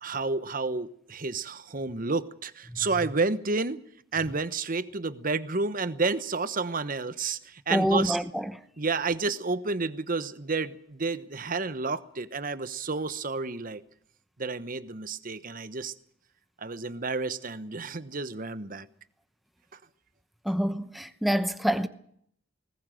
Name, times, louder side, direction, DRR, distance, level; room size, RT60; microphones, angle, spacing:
voice 1, 0.0-3.8 4.1-8.2 8.8-13.8 14.4-15.9 16.6-18.9, right 3 dB, 45° right, 1.1 m, -30 dB
voice 2, 7.7-8.6 20.4-21.9, equal, ahead, 1.0 m, -27 dB
20.0 x 19.5 x 7.8 m
head